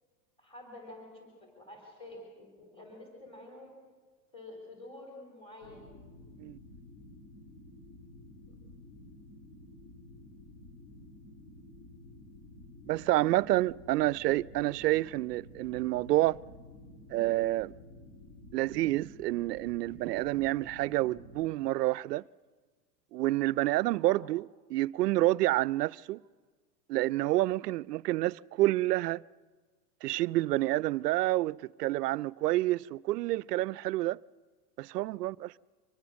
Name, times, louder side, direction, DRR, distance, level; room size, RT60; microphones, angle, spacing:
voice 1, 0.4-3.7 4.3-5.8 8.5-8.6 13.9-14.9 24.0-24.2, left 2 dB, 10° left, 3.6 m, -49 dB
sound 1, 5.6-21.5, left 1 dB, 55° left, 4.5 m, -52 dB
voice 2, 12.9-16.4 17.1-17.7 18.5-22.2 23.1-24.4 24.7-26.2 26.9-29.2 30.0-34.2 34.8-35.7, right 17 dB, 75° right, 0.5 m, -28 dB
24.5 x 19.5 x 6.3 m
supercardioid pair, 170°, 48 cm